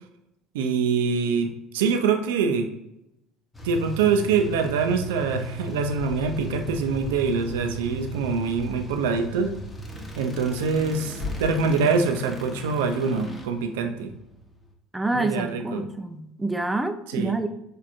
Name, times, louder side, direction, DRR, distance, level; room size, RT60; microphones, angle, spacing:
voice 1, 0.5-2.7 3.6-9.5 10.2-14.1 15.1-15.9 17.1-17.4, right 5 dB, 80° right, 5 dB, 0.4 m, -24 dB
sound 1, 3.5-14.7, right 3 dB, 15° left, 0.8 m, -37 dB
sound 2, 6.0-11.8, left 4 dB, 55° left, 0.7 m, -41 dB
voice 2, 14.9-17.5, right 2 dB, 10° right, 8 dB, 0.4 m, -27 dB
4.4 x 2.4 x 2.4 m, 0.85 s
hypercardioid pair, 75°, 0 cm